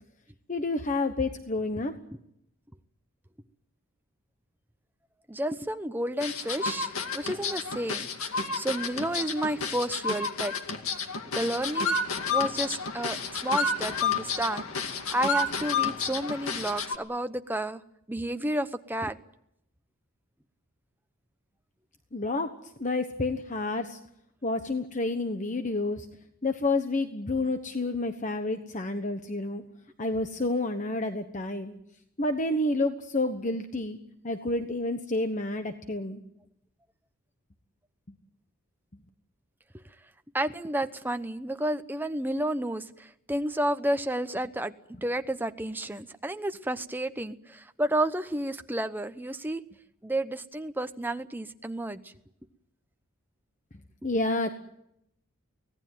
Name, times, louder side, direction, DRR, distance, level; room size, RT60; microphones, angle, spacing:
voice 1, 0.5-1.9 22.1-22.5 22.8-24.0 24.4-26.1 26.4-29.6 30.0-31.7 32.2-34.0 34.2-36.2 54.0-54.5, left 2 dB, 35° left, 7 dB, 1.2 m, -29 dB
voice 2, 5.3-8.1 8.5-10.5 11.3-11.9 12.3-13.2 13.4-14.6 15.1-17.8 18.1-19.2 39.7-39.8 40.3-44.7 45.0-49.6 50.0-52.1, right 1 dB, 10° right, 9 dB, 0.9 m, -31 dB
sound 1, 6.2-17.0, left 4 dB, 75° left, 2.2 m, -30 dB
24.5 x 18.0 x 9.3 m, 0.78 s
head